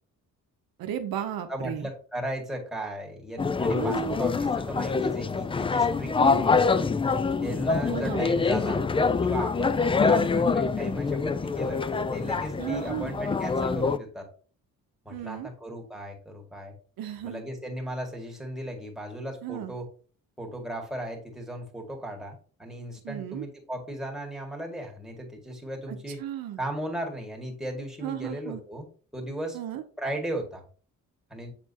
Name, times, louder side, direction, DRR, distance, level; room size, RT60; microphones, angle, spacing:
voice 1, 0.8-1.9 3.7-4.2 6.2-6.5 7.9-8.3 12.6-13.1 15.1-15.5 17.0-17.4 19.4-19.7 23.0-23.5 25.9-26.6 28.0-28.6 29.5-29.8, right 10 dB, 80° right, 7 dB, 0.8 m, -34 dB
voice 2, 1.5-6.9 7.4-14.3 15.0-16.7 17.2-19.9 20.4-26.2 26.6-28.9 29.1-29.6 30.0-30.6 31.3-31.5, right 1 dB, ahead, 0 dB, 2.0 m, -36 dB
sound 1, 3.4-14.0, left 4 dB, 15° left, 0.3 m, -25 dB
7.8 x 4.4 x 2.9 m, 0.41 s
cardioid pair, 75°, 35 cm